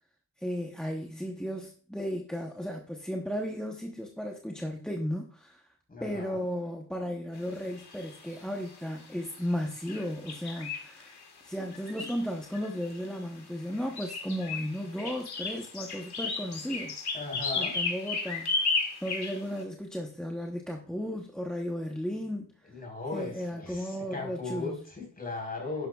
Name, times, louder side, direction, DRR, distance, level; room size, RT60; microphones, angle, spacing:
voice 1, 0.4-5.6 6.0-11.1 11.4-17.0 17.6-18.5 19.0-22.5 23.1-24.8, equal, ahead, 1 dB, 0.9 m, -35 dB
voice 2, 5.9-6.4 17.1-17.8 22.7-25.9, left 3 dB, 20° left, -1 dB, 4.2 m, -37 dB
sound 1, 7.8-8.3 9.5-9.6 9.9-11.2 11.7-13.1 13.7-19.6, left 4 dB, 75° left, 2.3 m, -34 dB
11.5 x 10.5 x 2.3 m, 0.43 s
wide cardioid pair, 175°, 39 cm